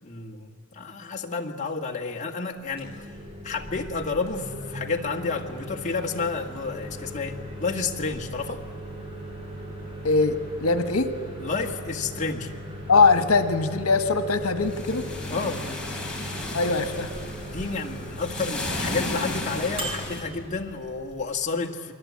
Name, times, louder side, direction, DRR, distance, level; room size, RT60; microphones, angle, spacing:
voice 1, 0.0-3.1 3.4-8.6 11.4-12.5 15.3-15.7 17.5-21.9, left 4 dB, 35° left, 1 dB, 1.7 m, -30 dB
Microwave oven, 2.6-21.4, equal, 25° right, 7.5 m, -38 dB
voice 2, 10.0-11.1 12.9-15.1 16.5-17.1, left 4 dB, 85° left, 9 dB, 1.3 m, -21 dB
sound 1, 14.6-20.2, left 2 dB, 5° left, 4.0 m, -34 dB
29.0 x 22.0 x 8.5 m, 2.5 s
head